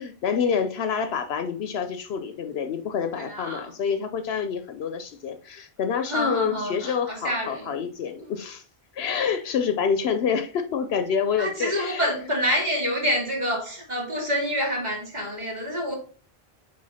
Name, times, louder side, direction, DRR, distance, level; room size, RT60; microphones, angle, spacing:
voice 1, 0.0-8.6 8.9-12.1, left 6 dB, 80° left, 0.9 m, -27 dB
voice 2, 3.2-3.7 6.1-7.8 11.4-15.9, equal, 45° right, 2.5 m, -27 dB
6.4 x 4.2 x 4.1 m
omnidirectional pair, 1.0 m